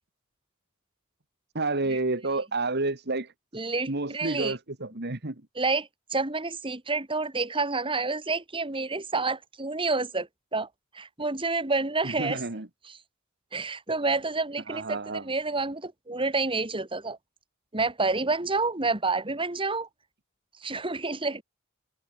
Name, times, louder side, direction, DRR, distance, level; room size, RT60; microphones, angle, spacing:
voice 1, 1.5-3.3 3.9-5.4 12.0-12.7 14.7-15.3, right 2 dB, 50° right, 1.9 m, -30 dB
voice 2, 3.5-4.6 5.6-10.7 10.9-12.4 13.5-15.0 15.2-17.2 17.7-19.9 20.6-21.4, right 3 dB, 25° right, 2.3 m, -29 dB
open air
head